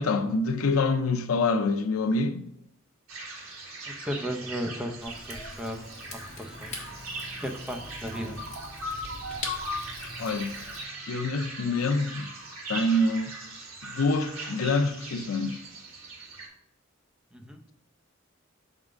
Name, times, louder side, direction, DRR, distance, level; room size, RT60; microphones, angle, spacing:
voice 1, 0.0-2.4 10.2-10.5 11.1-12.3 12.7-13.4 13.8-15.6, left 2 dB, 85° left, 0.6 m, -26 dB
sound 1, 3.1-16.5, right 1 dB, 85° right, 1.8 m, -39 dB
voice 2, 3.8-5.8 6.1-6.9 7.4-8.4 17.3-17.6, equal, 5° right, 0.6 m, -35 dB
Rain / Fire, 5.0-10.8, left 2 dB, 35° left, 1.7 m, -42 dB
6.4 x 3.8 x 4.8 m
head